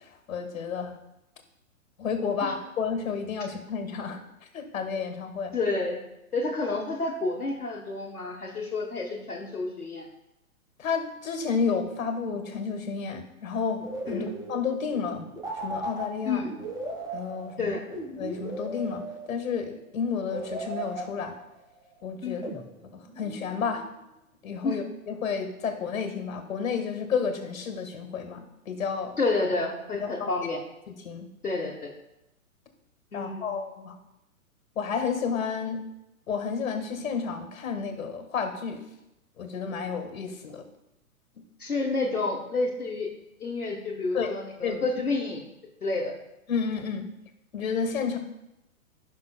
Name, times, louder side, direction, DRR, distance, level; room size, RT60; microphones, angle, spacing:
voice 1, 0.3-0.9 2.0-4.2 4.5-5.5 10.8-15.2 15.6-16.4 17.1-17.8 18.2-21.3 22.0-22.4 22.9-23.8 24.4-29.2 30.0-30.3 30.9-31.3 33.1-34.0 34.8-35.8 36.3-38.8 39.4-40.6 44.1-44.3 44.6-44.8 46.5-47.1 47.5-48.2, left 6 dB, 65° left, 6 dB, 1.7 m, -31 dB
voice 2, 5.5-6.0 6.3-10.0 14.1-14.3 16.2-16.5 17.6-17.8 22.2-22.5 24.6-24.8 29.2-30.6 31.4-31.9 33.1-33.5 41.6-43.1 43.4-45.4 45.8-46.1, left 3 dB, 90° left, -1 dB, 1.4 m, -29 dB
sound 1, 13.8-19.6 20.3-21.7 22.4-23.9, right 1 dB, 10° right, 1.4 m, -37 dB
15.0 x 6.1 x 2.3 m, 0.89 s
figure-of-eight pair, 115°, 43 cm